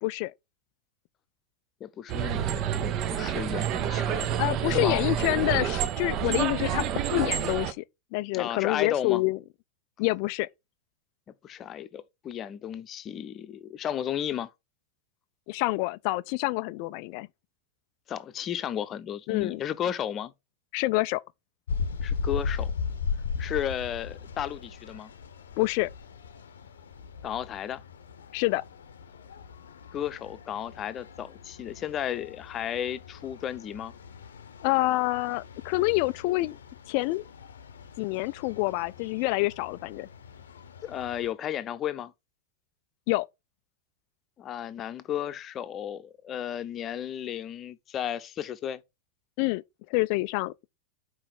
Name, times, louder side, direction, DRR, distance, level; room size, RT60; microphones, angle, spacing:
voice 1, 0.0-0.3 4.4-6.8 7.1-7.8 8.1-9.4 10.0-10.5 15.5-17.3 19.3-19.6 20.7-21.2 25.6-25.9 28.3-28.6 34.6-36.6 36.9-37.2 38.0-40.1 43.1-43.3 49.4-49.6 49.9-50.5, left 20 dB, 45° left, 0.4 m, -27 dB
voice 2, 1.8-4.4 4.7-5.0 8.3-9.2 11.4-14.5 18.1-20.3 22.0-22.7 23.4-25.1 27.2-27.8 29.9-33.9 40.8-42.1 44.4-48.8, left 10 dB, 30° left, 0.8 m, -34 dB
sound 1, 2.1-7.7, right 10 dB, 35° right, 0.8 m, -28 dB
sound 2, 21.7-41.3, left 5 dB, 65° left, 0.8 m, -38 dB
5.7 x 4.8 x 6.5 m
figure-of-eight pair, 90°, 0 cm